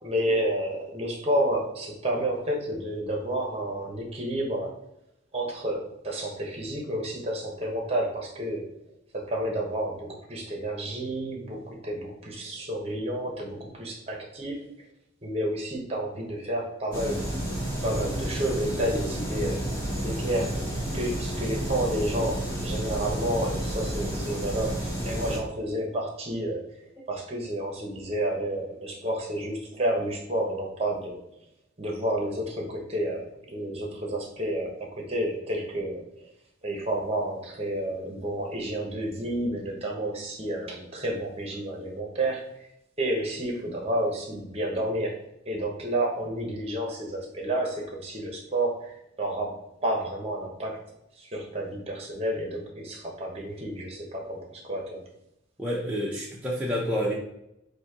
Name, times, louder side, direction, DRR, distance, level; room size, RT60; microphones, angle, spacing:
voice 1, 0.0-4.7 5.3-8.7 9.1-14.6 15.2-17.2 17.8-20.6 20.9-26.6 27.1-31.2 31.8-36.3 36.6-42.7 43.0-50.8 51.2-55.0, right 1 dB, 30° right, 0 dB, 1.0 m, -30 dB
sound 1, 16.9-25.4, right 1 dB, 20° left, 1.6 m, -31 dB
voice 2, 55.6-57.1, equal, 5° right, -6 dB, 0.6 m, -28 dB
4.1 x 2.7 x 4.7 m, 0.82 s
head